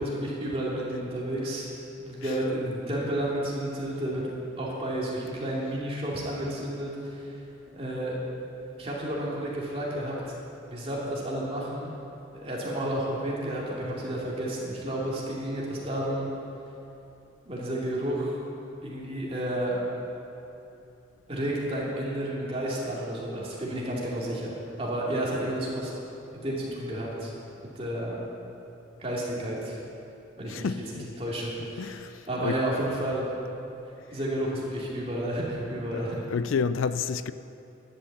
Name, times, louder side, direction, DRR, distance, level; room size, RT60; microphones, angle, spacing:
voice 1, 0.0-1.7 2.0-4.2 4.6-7.4 7.7-8.1 8.8-10.3 10.7-11.9 12.3-16.3 17.4-18.4 18.8-19.8 21.3-25.9 26.4-27.3 27.7-28.2 29.0-29.8 30.4-30.7 30.9-33.3 34.1-36.3, right 1 dB, 30° right, 2.6 m, -31 dB
voice 2, 30.5-31.1 31.8-32.6 35.9-36.0 36.3-37.3, left 5 dB, 85° left, 0.4 m, -30 dB
11.5 x 8.5 x 7.3 m
head